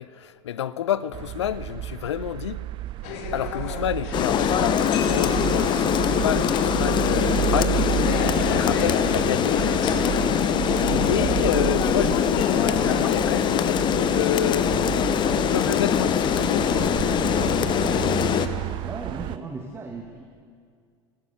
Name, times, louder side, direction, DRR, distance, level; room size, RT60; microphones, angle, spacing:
voice 1, 0.0-2.6 3.3-7.8 8.5-9.6 10.9-14.8 15.4-16.9, left 10 dB, 70° left, 0.4 m, -29 dB
sound 1, 1.1-19.4, right 15 dB, 30° right, 0.4 m, -31 dB
sound 2, 3.0-13.2, left 6 dB, 50° left, 1.4 m, -34 dB
Rain, 4.1-18.5, left 9 dB, 30° left, 0.8 m, -23 dB
voice 2, 18.8-20.2, right 3 dB, 15° right, 1.2 m, -36 dB
15.5 x 12.0 x 6.6 m
figure-of-eight pair, 80°, 15 cm